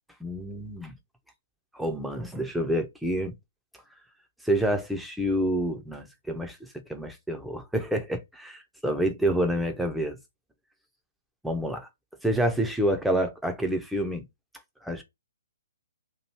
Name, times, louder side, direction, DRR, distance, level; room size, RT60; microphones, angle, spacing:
voice 1, 0.2-0.9 1.7-3.3 4.4-10.2 11.4-11.9 12.2-14.2 14.8-15.0, right 1 dB, ahead, 0.6 m, -28 dB
3.0 x 2.6 x 4.3 m
figure-of-eight pair, 125°, 0 cm